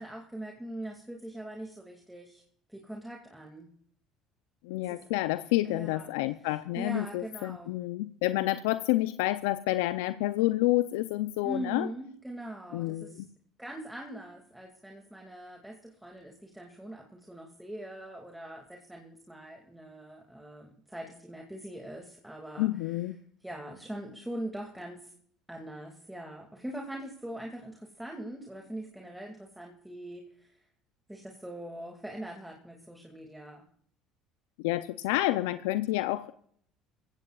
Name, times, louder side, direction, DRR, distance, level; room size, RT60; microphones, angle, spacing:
voice 1, 0.0-2.4 2.7-3.7 4.8-5.0 5.6-6.1 6.8-7.7 11.4-13.2 13.6-22.7 23.4-25.1 25.5-30.6 31.1-33.6, right 1 dB, 5° right, 1 dB, 2.3 m, -42 dB
voice 2, 4.6-11.9 12.7-13.3 22.6-23.1 34.6-36.3, left 17 dB, 80° left, 14 dB, 0.5 m, -29 dB
22.0 x 15.5 x 2.4 m, 0.62 s
hypercardioid pair, 70°, 0 cm